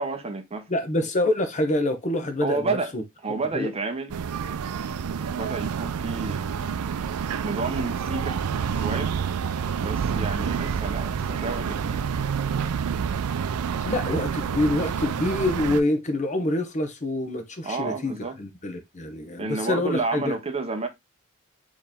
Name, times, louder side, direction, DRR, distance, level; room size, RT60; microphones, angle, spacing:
voice 1, 0.0-0.7 2.4-3.0 3.2-4.1 4.7-6.5 7.4-8.4 8.8-9.1 9.8-12.0 17.6-18.4 19.4-20.9, right 3 dB, 30° right, 0.7 m, -30 dB
voice 2, 0.7-3.0 3.5-3.7 13.8-20.3, left 1 dB, 35° left, 0.8 m, -26 dB
sound 1, 4.1-15.8, right 7 dB, 90° right, 0.4 m, -28 dB
4.5 x 3.1 x 3.4 m
head